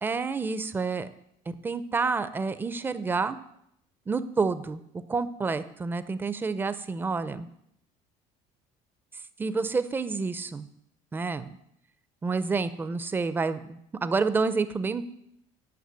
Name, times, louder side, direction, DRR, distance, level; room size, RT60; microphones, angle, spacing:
voice 1, 0.0-1.1 1.6-3.4 4.1-4.8 5.1-7.5 9.4-10.7 11.1-11.6 12.2-15.0, right 4 dB, 15° right, 13 dB, 0.5 m, -29 dB
9.4 x 5.8 x 8.2 m, 0.76 s
cardioid pair, 150°, 14 cm